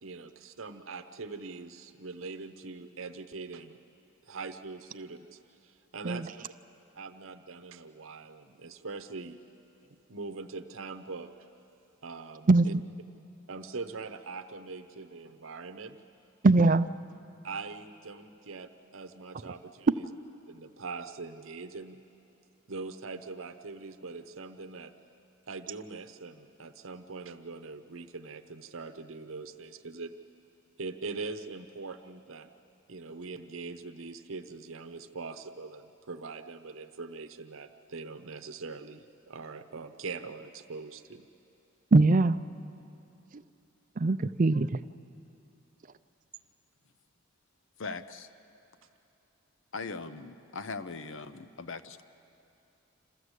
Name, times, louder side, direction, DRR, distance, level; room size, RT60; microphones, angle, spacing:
voice 1, 0.0-3.8 4.3-6.3 6.9-9.4 10.1-11.3 12.0-12.7 13.5-16.0 17.4-19.9 20.5-22.0 22.7-24.9 25.5-30.2 30.8-32.5 32.9-41.3, right 4 dB, 70° right, 0.8 m, -42 dB
voice 2, 16.4-16.9 41.9-42.4 43.3-43.4 44.0-44.8, right 3 dB, 40° right, 0.4 m, -22 dB
voice 3, 47.8-48.3 49.7-52.0, left 4 dB, 65° left, 0.8 m, -40 dB
27.5 x 14.0 x 8.1 m
head